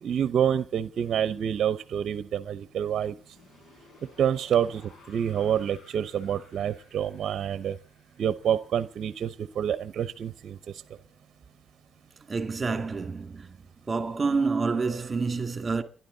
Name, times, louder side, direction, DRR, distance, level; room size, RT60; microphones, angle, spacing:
voice 1, 0.0-3.2 4.2-7.8 8.2-10.6, right 9 dB, 60° right, 0.8 m, -27 dB
sound 1, 3.0-9.9, left 3 dB, 65° left, 6.2 m, -57 dB
voice 2, 12.3-13.6 13.9-15.8, right 4 dB, 30° right, 2.2 m, -28 dB
30.0 x 11.0 x 3.9 m
cardioid pair, 90°, 0 cm